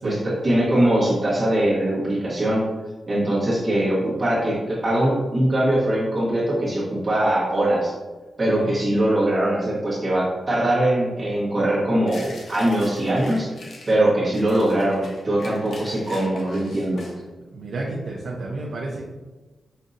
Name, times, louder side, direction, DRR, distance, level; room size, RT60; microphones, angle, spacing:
voice 1, 0.0-2.7 3.1-7.9 8.4-13.5 13.9-17.1, right 1 dB, 35° right, -8 dB, 1.2 m, -21 dB
sound 1, 12.1-14.0 14.3-17.2, left 2 dB, 75° left, 0.7 m, -43 dB
voice 2, 17.5-19.1, right 2 dB, 75° right, -4 dB, 0.6 m, -31 dB
5.3 x 2.7 x 2.5 m, 1.2 s
wide cardioid pair, 135°, 0 cm